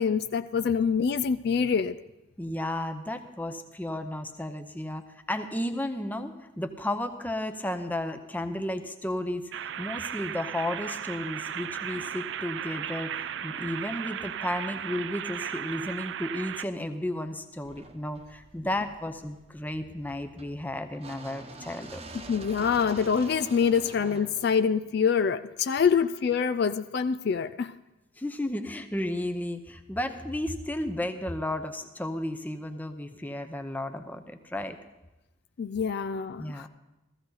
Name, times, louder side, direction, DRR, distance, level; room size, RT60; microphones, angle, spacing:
voice 1, 0.0-2.0 22.1-27.8 35.6-36.7, left 6 dB, 55° left, 0.3 m, -25 dB
voice 2, 2.4-22.0 28.2-34.8 36.4-36.7, left 1 dB, 10° left, 0.7 m, -33 dB
sound 1, 9.5-16.6, right 9 dB, 65° right, 0.4 m, -36 dB
sound 2, 17.6-25.7, right 2 dB, 30° right, 1.0 m, -47 dB
15.5 x 15.0 x 4.0 m
head